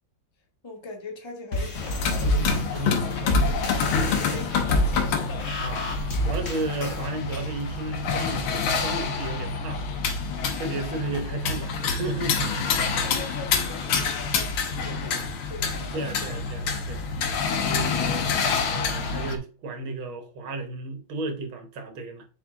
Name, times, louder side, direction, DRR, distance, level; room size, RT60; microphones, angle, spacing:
voice 1, 0.6-2.5 2.7-5.6 13.0-16.3, left 4 dB, 15° left, 1.0 m, -41 dB
sound 1, 1.5-7.1, equal, 40° left, 1.5 m, -28 dB
sound 2, 1.8-19.4, left 5 dB, 80° left, 1.8 m, -27 dB
voice 2, 2.2-3.2 3.6-3.7 5.6-5.8 6.2-9.8 10.5-12.7 13.9-14.0 15.9-17.0 17.6-18.3 18.7-22.3, right 2 dB, 80° right, 1.9 m, -33 dB
6.9 x 4.1 x 3.7 m
omnidirectional pair, 2.2 m